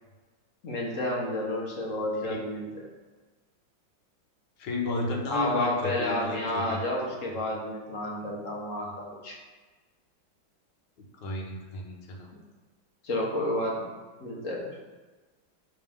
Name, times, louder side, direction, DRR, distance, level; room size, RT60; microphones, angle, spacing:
voice 1, 0.6-2.9 5.3-9.4 13.0-13.9 14.2-14.8, left 1 dB, 45° left, -2 dB, 1.4 m, -30 dB
voice 2, 4.6-6.8 11.1-12.3, left 2 dB, 65° left, 0 dB, 1.7 m, -33 dB
10.5 x 3.8 x 3.5 m, 1.3 s
omnidirectional pair, 2.2 m